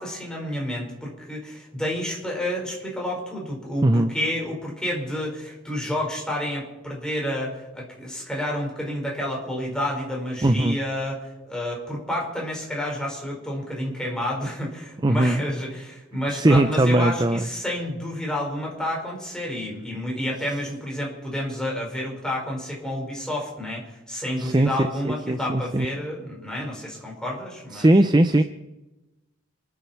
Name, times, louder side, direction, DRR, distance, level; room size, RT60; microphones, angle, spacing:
voice 1, 0.0-11.2 11.5-27.9, left 1 dB, 5° left, -2 dB, 5.2 m, -30 dB
voice 2, 3.8-4.1 10.4-10.8 15.0-15.4 16.3-17.4 24.4-24.7 25.0-25.9 27.7-28.4, right 1 dB, 20° right, 9 dB, 0.6 m, -19 dB
27.5 x 10.5 x 4.6 m, 1.0 s
head